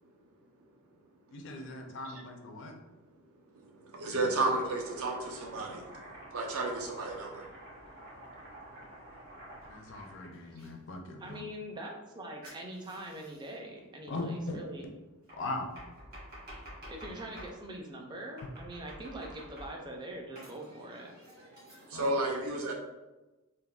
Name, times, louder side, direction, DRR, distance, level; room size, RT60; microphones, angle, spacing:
voice 1, 1.3-2.7 9.7-11.4 14.1-14.6 15.4-15.7 17.0-17.1 21.9-22.1, left 2 dB, 55° left, 3 dB, 0.4 m, -39 dB
voice 2, 3.5-6.0 6.3-7.5 21.9-22.7, right 2 dB, 70° right, 0 dB, 0.6 m, -32 dB
Domestic sounds home sounds, 4.3-10.7 12.4-13.5 15.3-17.6 18.4-19.9 20.4-22.1, right 1 dB, 45° right, 1.1 m, -50 dB
voice 3, 11.2-14.9 16.9-21.1, right 1 dB, 20° right, 1 dB, 0.3 m, -43 dB
3.4 x 2.1 x 2.3 m, 1.1 s
head